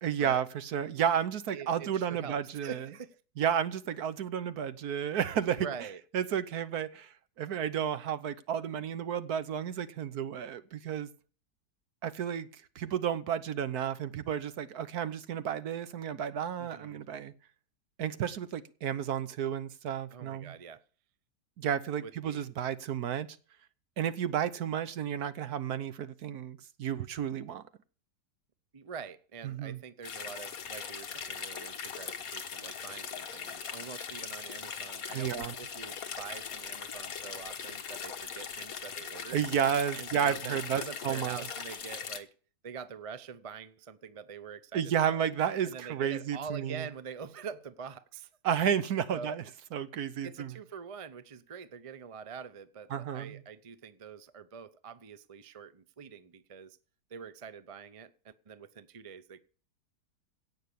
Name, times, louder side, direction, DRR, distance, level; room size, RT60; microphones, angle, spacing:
voice 1, 0.0-2.9 3.4-5.7 6.1-11.1 12.0-17.3 18.0-20.6 21.6-23.3 24.0-27.6 29.4-29.8 35.1-35.5 39.3-41.5 44.7-46.9 48.4-49.4 49.7-50.5 52.9-53.4, right 9 dB, 65° right, 1.4 m, -32 dB
voice 2, 1.5-3.2 5.6-6.0 16.6-17.0 20.1-20.8 22.0-22.4 28.7-39.4 39.9-42.3 42.6-45.2 45.6-48.3 49.1-49.4 50.2-56.8 57.1-59.4, right 6 dB, 40° right, 0.5 m, -45 dB
sound 1, 30.0-42.2, left 7 dB, 55° left, 1.6 m, -40 dB
17.0 x 6.3 x 8.5 m
omnidirectional pair, 1.9 m